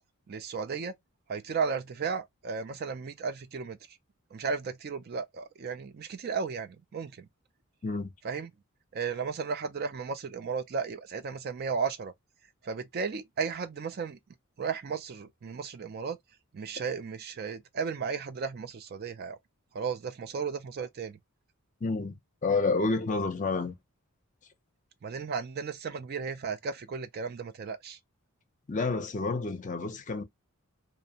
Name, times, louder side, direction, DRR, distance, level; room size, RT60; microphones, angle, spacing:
voice 1, 0.3-0.9 1.3-4.0 4.3-7.3 8.2-8.5 8.9-12.1 12.6-14.2 14.6-16.2 16.5-19.4 19.7-21.2 25.0-28.0, right 5 dB, 45° right, 0.3 m, -34 dB
voice 2, 21.8-22.2 22.4-23.7 28.7-30.2, left 3 dB, 35° left, 0.5 m, -29 dB
2.6 x 2.0 x 2.7 m
head